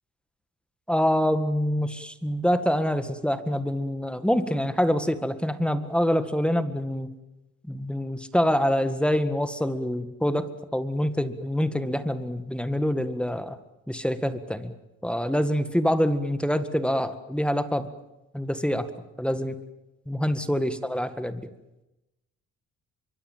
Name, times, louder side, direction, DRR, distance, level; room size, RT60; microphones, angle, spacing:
voice 1, 0.9-7.1 7.7-13.6 13.9-14.7 15.0-17.9 18.3-18.9 19.2-19.6 20.1-21.5, equal, 5° left, 11 dB, 1.9 m, -26 dB
25.0 x 23.5 x 7.5 m, 0.96 s
cardioid pair, 90°, 30 cm